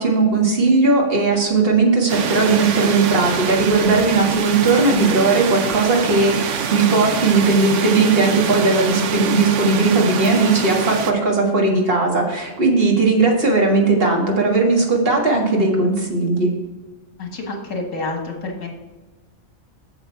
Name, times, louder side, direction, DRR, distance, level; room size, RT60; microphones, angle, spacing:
voice 1, 0.0-16.5, right 3 dB, 45° right, 0 dB, 1.9 m, -17 dB
sound 1, 2.1-11.1, right 7 dB, 65° right, 1.0 m, -25 dB
voice 2, 17.2-18.7, left 2 dB, 70° left, 2 dB, 1.8 m, -28 dB
7.9 x 7.2 x 4.6 m, 1.2 s
omnidirectional pair, 1.4 m